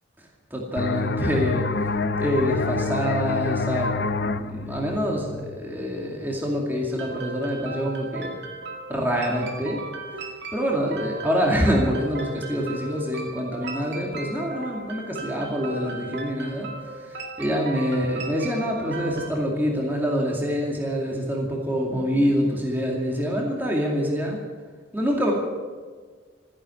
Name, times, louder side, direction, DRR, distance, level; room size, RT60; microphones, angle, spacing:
voice 1, 0.5-1.6 2.2-3.9 4.4-8.3 8.9-9.8 10.5-24.4 24.9-25.3, equal, 10° right, -2 dB, 2.4 m, -26 dB
sound 1, 0.8-6.2, left 3 dB, 55° left, 0.8 m, -28 dB
sound 2, 7.0-19.3, right 3 dB, 60° right, 2.1 m, -37 dB
14.5 x 11.0 x 9.0 m, 1.5 s
head